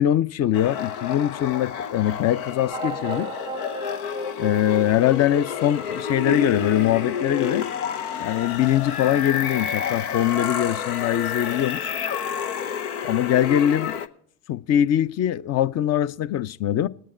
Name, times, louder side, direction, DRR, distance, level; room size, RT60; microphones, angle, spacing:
voice 1, 0.0-3.3 4.4-7.7 8.2-11.8 13.0-14.0 14.5-16.9, left 11 dB, 35° left, 0.5 m, -22 dB
sound 1, 0.5-14.1, left 8 dB, 85° left, 0.8 m, -29 dB
sound 2, 2.7-7.7, right 3 dB, 10° right, 0.6 m, -37 dB
19.5 x 7.5 x 4.3 m
hypercardioid pair, 75°, 44 cm